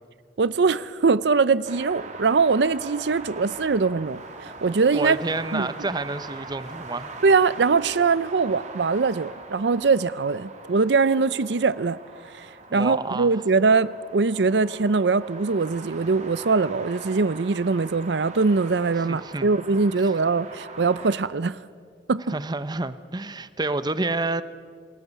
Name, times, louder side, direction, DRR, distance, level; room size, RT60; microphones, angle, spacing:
voice 1, 0.4-5.2 5.5-5.7 7.2-12.0 12.3-21.6 22.1-22.2, right 4 dB, 75° right, 0.6 m, -22 dB
sound 1, 1.6-21.2, right 3 dB, 45° right, 2.8 m, -42 dB
voice 2, 4.9-7.1 12.7-13.3 19.1-19.5 20.0-20.1 22.3-24.4, right 2 dB, 25° right, 0.8 m, -29 dB
27.5 x 21.0 x 8.3 m
head